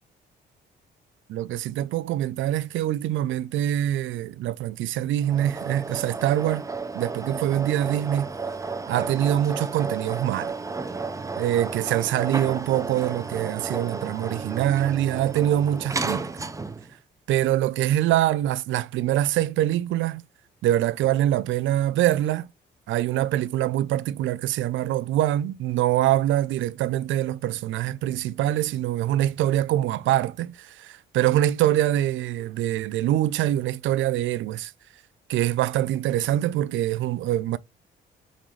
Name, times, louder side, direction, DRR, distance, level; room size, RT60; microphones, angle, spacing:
voice 1, 1.3-6.6 6.9-8.3 8.9-10.5 11.4-16.3 17.3-20.2 20.6-22.5 22.9-34.7 35.3-37.6, right 13 dB, 75° right, 0.4 m, -24 dB
sound 1, 5.2-16.9, right 4 dB, 15° right, 0.6 m, -33 dB
4.0 x 3.9 x 3.1 m
cardioid pair, 90°, 20 cm